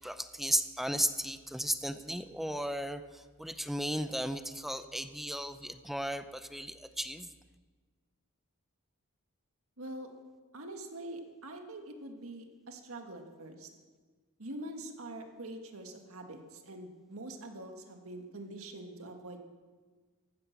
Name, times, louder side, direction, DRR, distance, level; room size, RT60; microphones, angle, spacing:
voice 1, 0.0-7.3, equal, ahead, 10 dB, 0.6 m, -35 dB
voice 2, 9.8-10.1 10.5-13.7 14.4-19.4, right 1 dB, 70° right, 4 dB, 1.9 m, -44 dB
15.0 x 13.0 x 6.0 m, 1.4 s
head